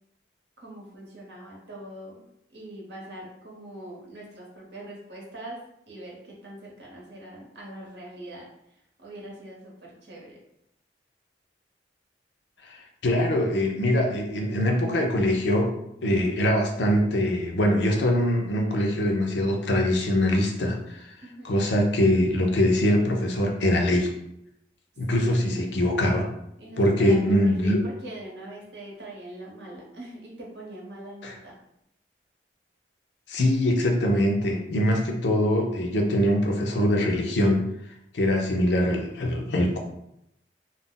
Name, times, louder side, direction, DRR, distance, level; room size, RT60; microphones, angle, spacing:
voice 1, 0.6-2.3 2.5-8.5 9.0-10.4 21.2-21.6 25.1-25.8 26.6-31.6, right 1 dB, 75° right, -3 dB, 0.9 m, -42 dB
voice 2, 12.7-15.7 16.0-21.0 21.4-24.1 25.0-26.3 26.8-27.8 31.2-31.3 33.3-37.6 38.1-39.8, left 1 dB, 80° left, 2 dB, 0.5 m, -23 dB
2.5 x 2.0 x 3.7 m, 0.79 s
head